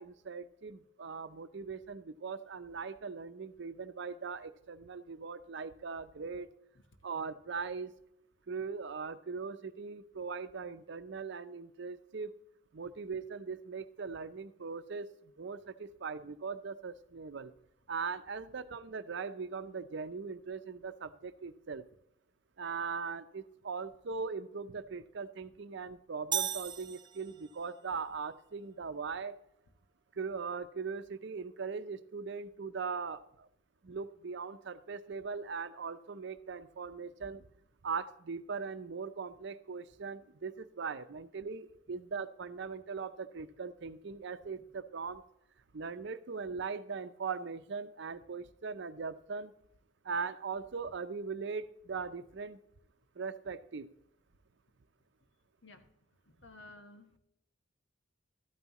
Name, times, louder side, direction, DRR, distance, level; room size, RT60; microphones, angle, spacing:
voice 1, 0.0-6.5 7.0-8.0 8.5-12.3 12.7-17.5 17.9-21.8 22.6-29.3 30.2-33.5 33.8-37.4 37.8-45.2 45.7-49.5 50.0-52.6 53.2-53.9, right 5 dB, 65° right, 12 dB, 0.6 m, -40 dB
sound 1, 26.3-27.7, right 9 dB, 20° right, 0.3 m, -36 dB
voice 2, 56.3-57.2, left 2 dB, 65° left, 7 dB, 1.3 m, -54 dB
13.0 x 9.3 x 3.0 m, 0.79 s
head